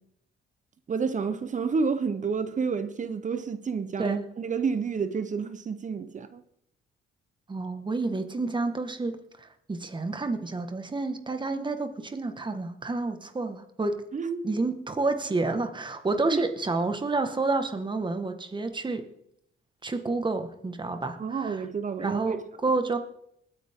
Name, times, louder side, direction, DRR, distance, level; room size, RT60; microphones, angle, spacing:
voice 1, 0.9-6.4 14.1-14.5 16.3-16.4 21.2-22.4, right 5 dB, 40° right, 1.0 m, -30 dB
voice 2, 7.5-14.0 14.4-19.1 19.8-21.6 22.0-23.0, right 3 dB, 25° right, 1.7 m, -29 dB
20.5 x 9.3 x 3.8 m
cardioid pair, 90°, 20 cm